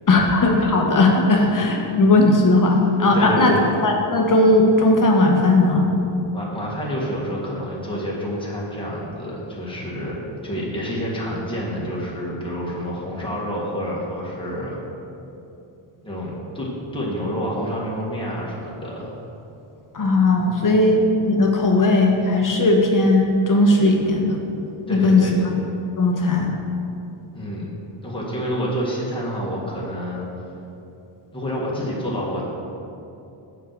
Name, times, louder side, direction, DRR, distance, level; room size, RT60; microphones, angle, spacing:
voice 1, 0.1-3.5 3.8-5.9 19.9-24.4 24.9-25.3 26.0-26.5, left 2 dB, 40° left, 1 dB, 1.0 m, -17 dB
voice 2, 3.1-3.7 6.3-10.2 10.4-14.8 16.0-19.1 24.9-25.4 27.3-27.7 28.0-30.3 31.3-32.4, equal, 10° left, -5 dB, 1.6 m, -28 dB
7.2 x 4.5 x 6.6 m, 2.8 s
wide cardioid pair, 145°, 50 cm